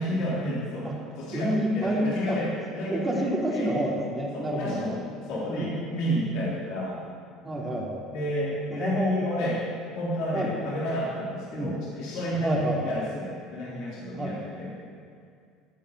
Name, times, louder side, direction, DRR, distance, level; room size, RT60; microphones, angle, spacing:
voice 1, 0.0-3.8 4.3-5.0 5.2-7.0 8.1-9.6 9.9-14.7, equal, 55° left, -6 dB, 3.5 m, -31 dB
voice 2, 1.3-2.4 2.9-5.0 5.5-5.7 7.4-8.0 8.7-9.1 10.3-10.5 11.5-11.7 12.4-13.0 14.2-14.3, right 1 dB, 20° right, -2 dB, 3.0 m, -28 dB
15.5 x 8.8 x 6.7 m, 2.3 s
figure-of-eight pair, 65°, 0 cm